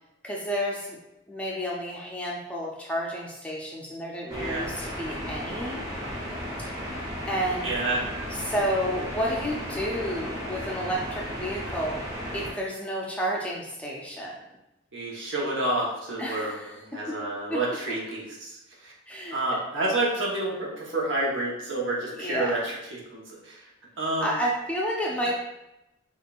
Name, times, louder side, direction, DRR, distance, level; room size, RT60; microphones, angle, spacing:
voice 1, 0.2-1.0 1.3-5.8 6.7-7.0 7.3-7.8 8.4-12.0 12.3-14.4 16.2-17.2 17.5-17.6 19.1-19.4 22.2-22.5 24.2-25.3, equal, 5° left, -3 dB, 0.4 m, -31 dB
voice 2, 4.2-4.7 7.6-8.0 14.9-18.9 19.3-23.6 24.0-24.3, right 2 dB, 75° right, -4 dB, 1.0 m, -29 dB
sound 1, 4.3-12.5, equal, 15° right, 0.8 m, -35 dB
5.0 x 2.4 x 2.4 m, 0.90 s
head